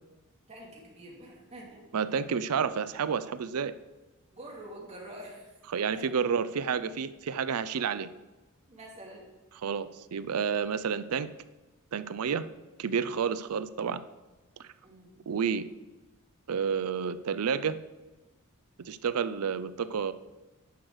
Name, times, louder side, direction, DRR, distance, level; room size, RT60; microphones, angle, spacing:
voice 1, 0.5-1.8 4.3-5.5 5.9-6.1 8.7-9.3 14.8-15.2, right 1 dB, 30° right, -3 dB, 2.7 m, -46 dB
voice 2, 1.9-3.7 5.7-8.1 9.6-11.3 11.9-12.4 12.8-14.0 15.3-15.7 16.5-17.8 18.8-20.1, right 6 dB, 90° right, 14 dB, 0.5 m, -30 dB
10.5 x 6.2 x 4.8 m, 1.1 s
head